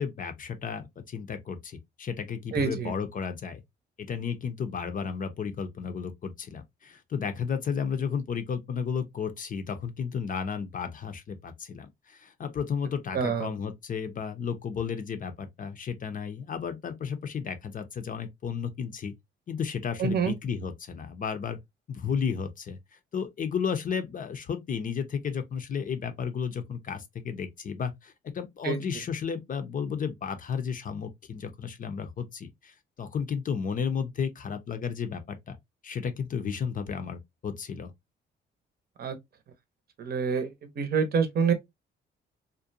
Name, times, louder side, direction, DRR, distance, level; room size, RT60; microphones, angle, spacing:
voice 1, 0.0-3.6 4.0-19.1 19.5-21.6 21.9-35.6 35.8-37.9, left 6 dB, 45° left, 0.5 m, -33 dB
voice 2, 2.5-2.9 13.1-13.5 20.0-20.3 28.6-28.8 39.0-39.2 40.0-41.5, right 6 dB, 50° right, 0.7 m, -27 dB
2.5 x 2.1 x 2.6 m
cardioid pair, 90°, 20 cm